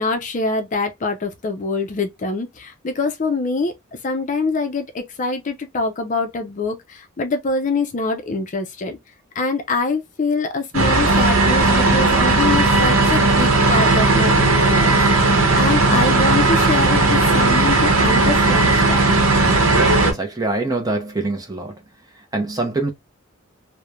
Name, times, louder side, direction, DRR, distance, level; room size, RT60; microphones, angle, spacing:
voice 1, 0.0-3.7 4.0-9.0 9.4-19.0, left 3 dB, 40° left, 0.4 m, -24 dB
sound 1, 10.7-20.1, right 2 dB, 85° right, 0.8 m, -16 dB
voice 2, 20.0-21.7 22.3-22.9, right 2 dB, 20° right, 0.6 m, -24 dB
3.0 x 2.1 x 2.2 m
head